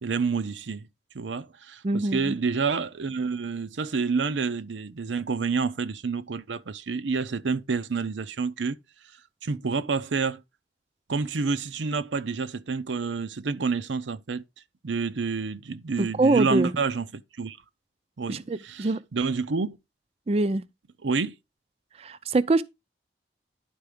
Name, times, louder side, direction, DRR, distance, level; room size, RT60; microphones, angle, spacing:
voice 1, 0.0-0.8 1.1-8.8 9.4-10.4 11.1-14.4 14.8-17.6 18.2-19.8 21.0-21.3, right 4 dB, 90° right, 0.6 m, -28 dB
voice 2, 1.8-2.4 16.0-16.7 18.3-19.0 20.3-20.7 22.0-22.6, right 2 dB, 35° right, 0.4 m, -24 dB
10.5 x 4.6 x 5.0 m
head